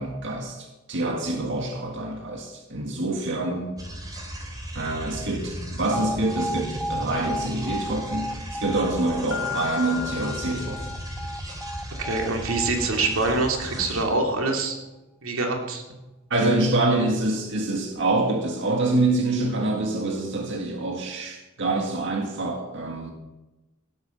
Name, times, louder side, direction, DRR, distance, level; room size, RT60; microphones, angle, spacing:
voice 1, 0.0-3.7 4.7-10.9 16.3-23.1, right 2 dB, 65° right, 1 dB, 1.8 m, -26 dB
sound 1, 3.8-14.0, right 1 dB, 20° right, 3.1 m, -36 dB
Alarm, 5.9-14.0, right 1 dB, 5° left, 1.1 m, -35 dB
Mallet percussion, 9.3-11.9, left 10 dB, 75° left, 0.8 m, -35 dB
voice 2, 12.0-14.8 15.2-15.8, right 3 dB, 90° right, 2 dB, 2.6 m, -25 dB
17.5 x 8.6 x 6.7 m, 1.1 s
head